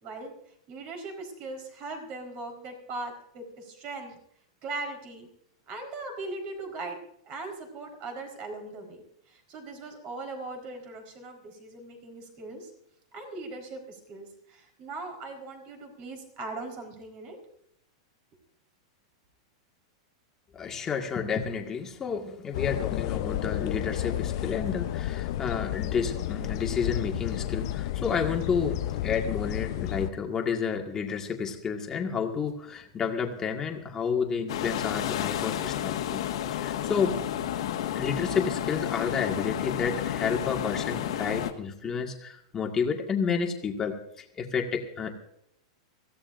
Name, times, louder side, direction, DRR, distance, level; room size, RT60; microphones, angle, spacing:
voice 1, 0.0-0.3 0.7-4.2 4.6-5.3 5.7-7.0 7.3-9.0 9.3-12.7 13.1-17.4, right 2 dB, 35° right, 3 dB, 4.3 m, -39 dB
voice 2, 20.5-36.2 36.5-37.2 38.0-44.0 44.4-45.1, left 6 dB, 15° left, 2 dB, 1.8 m, -30 dB
sound 1, 22.5-30.1, left 13 dB, 55° left, 0.7 m, -31 dB
sound 2, 34.5-41.5, left 11 dB, 75° left, 1.7 m, -31 dB
24.0 x 16.0 x 2.6 m, 0.71 s
supercardioid pair, 160°, 3 cm